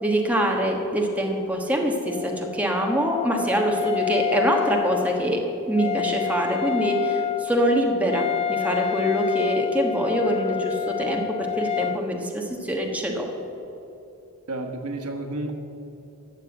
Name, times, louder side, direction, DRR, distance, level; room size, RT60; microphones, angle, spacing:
voice 1, 0.0-13.3, equal, 5° right, 1 dB, 1.2 m, -24 dB
Wind instrument woodwind instrument, 2.0-12.0, left 9 dB, 30° left, 0.4 m, -29 dB
voice 2, 14.5-15.5, right 2 dB, 90° right, 5 dB, 1.3 m, -31 dB
13.0 x 7.2 x 7.9 m, 3.0 s
head